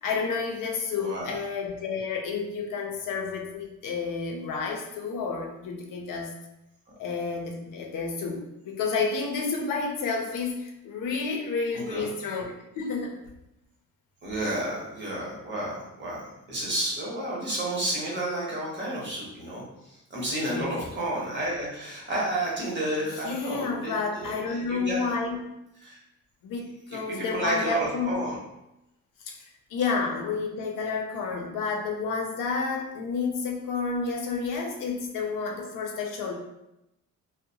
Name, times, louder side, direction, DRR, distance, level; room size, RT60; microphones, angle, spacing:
voice 1, 0.0-6.4 7.0-13.2 20.5-20.7 23.2-25.5 26.4-28.2 29.2-29.4 29.7-36.3, left 4 dB, 85° left, 2 dB, 0.6 m, -30 dB
voice 2, 1.0-1.3 11.7-12.1 14.2-16.2 16.5-25.1 25.8-26.0 26.9-28.4, right 1 dB, 35° right, -4 dB, 0.9 m, -31 dB
2.7 x 2.1 x 2.7 m, 0.89 s
cardioid pair, 140°, 32 cm